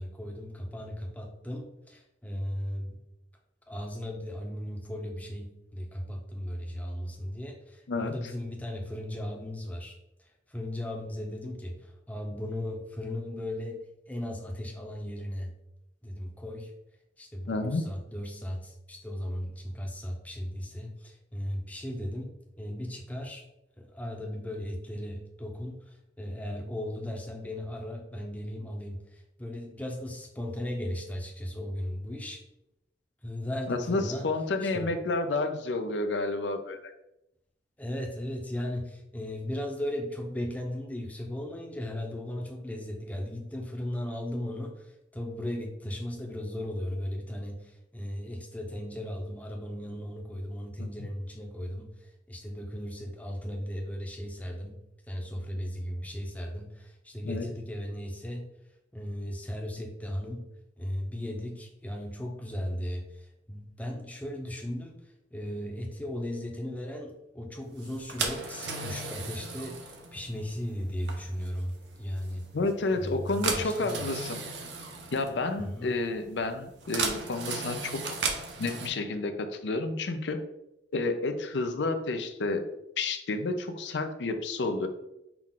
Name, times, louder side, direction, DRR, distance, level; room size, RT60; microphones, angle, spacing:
voice 1, 0.0-3.0 3.7-13.8 14.1-15.5 16.0-16.7 17.2-23.4 23.8-32.4 33.2-34.3 34.6-34.9 37.8-54.8 55.1-58.4 58.9-60.4 60.8-65.0 65.3-72.4 72.9-74.1 75.6-76.0, left 1 dB, 10° left, 1 dB, 0.6 m, -36 dB
voice 2, 17.5-17.9 33.7-36.9 50.8-50.9 57.2-57.5 72.5-74.4 75.1-78.3 78.6-80.4 80.9-82.6 83.0-84.9, left 3 dB, 80° left, 7 dB, 0.5 m, -30 dB
sound 1, 67.8-78.9, right 4 dB, 75° right, 0.7 m, -36 dB
5.9 x 2.4 x 3.7 m, 0.86 s
head